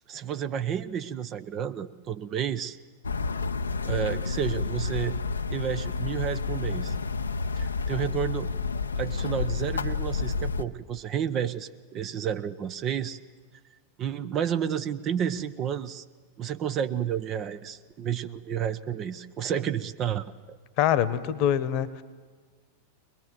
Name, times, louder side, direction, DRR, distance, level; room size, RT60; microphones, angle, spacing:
voice 1, 0.1-2.8 3.8-5.2 5.5-6.9 7.6-8.5 9.0-13.2 14.0-16.0 16.4-20.6, right 9 dB, 30° right, 11 dB, 0.8 m, -31 dB
sound 1, 3.0-10.6, left 4 dB, 75° left, 0.6 m, -30 dB
voice 2, 20.8-22.0, left 10 dB, 45° left, 16 dB, 1.1 m, -24 dB
22.0 x 21.5 x 7.8 m, 1.5 s
figure-of-eight pair, 90°, 0 cm